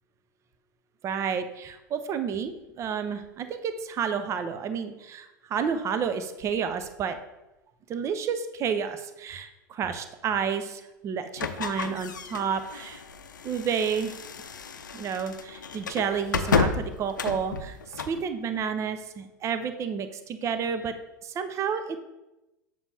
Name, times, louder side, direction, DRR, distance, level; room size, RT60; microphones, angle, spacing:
voice 1, 1.0-7.2 7.9-13.0 13.4-14.1 14.9-20.9 21.2-22.0, right 7 dB, 30° right, 10 dB, 0.7 m, -30 dB
sound 1, 11.4-18.2, left 5 dB, 75° left, 0.5 m, -31 dB
7.5 x 7.0 x 2.8 m, 0.97 s
figure-of-eight pair, 90°, 10 cm